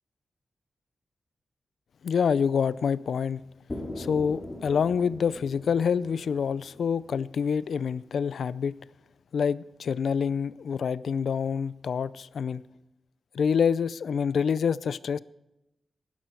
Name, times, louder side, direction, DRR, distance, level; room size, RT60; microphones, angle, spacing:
voice 1, 2.0-3.4 4.0-8.7 9.3-12.6 13.3-15.2, left 6 dB, 80° left, 0.4 m, -27 dB
sound 1, 3.7-7.6, left 1 dB, 25° left, 2.4 m, -41 dB
16.0 x 11.5 x 4.6 m
cardioid pair, 75°, 0 cm